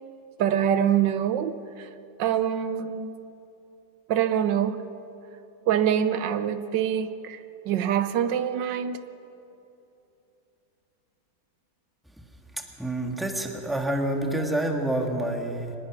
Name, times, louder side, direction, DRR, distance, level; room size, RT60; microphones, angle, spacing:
voice 1, 0.4-1.5 1.8-1.9 2.2-3.1 4.1-4.8 5.7-7.4 7.7-9.0, right 9 dB, 80° right, 11 dB, 1.4 m, -24 dB
voice 2, 12.8-15.7, right 1 dB, ahead, 2 dB, 1.8 m, -27 dB
24.5 x 19.5 x 6.1 m, 2.8 s
omnidirectional pair, 1.9 m